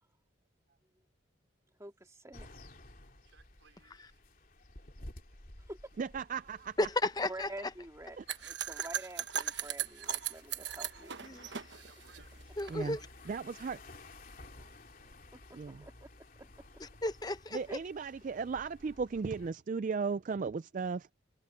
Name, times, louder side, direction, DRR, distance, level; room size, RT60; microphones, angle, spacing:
voice 1, 1.8-2.5 5.7-5.8 7.3-8.2 8.5-11.1 15.5-16.1 16.4-16.5 17.7-17.8, right 1 dB, 15° right, 2.2 m, -47 dB
sound 1, 2.3-19.5, left 2 dB, 45° left, 3.2 m, -55 dB
voice 2, 3.2-4.2 11.7-13.5, right 5 dB, 80° right, 5.0 m, -65 dB
voice 3, 6.0-6.8 8.2-8.3 12.7-13.0 13.3-13.8 15.5-15.8 17.5-21.1, right 5 dB, 40° right, 0.3 m, -36 dB
voice 4, 6.8-7.5 11.2-11.6 12.6-13.0 16.8-17.6, left 2 dB, 20° left, 0.8 m, -33 dB
sound 2, 8.3-12.7, right 10 dB, 65° right, 1.1 m, -38 dB
head